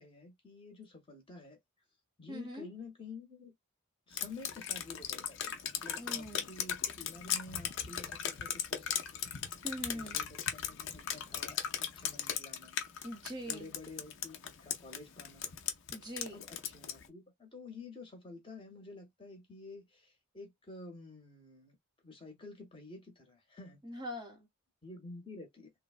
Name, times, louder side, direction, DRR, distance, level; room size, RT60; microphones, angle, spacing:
voice 1, 0.0-1.6 2.2-3.5 4.1-9.3 9.9-12.8 13.5-15.5 16.3-21.8 22.0-23.8 24.8-25.7, left 3 dB, 25° left, 0.8 m, -50 dB
voice 2, 2.3-2.7 6.0-6.5 9.6-10.2 13.0-13.7 15.9-16.4 23.8-24.5, equal, 20° right, 0.7 m, -42 dB
Drip, 4.2-17.1, left 9 dB, 55° left, 0.5 m, -37 dB
3.1 x 2.1 x 2.4 m
head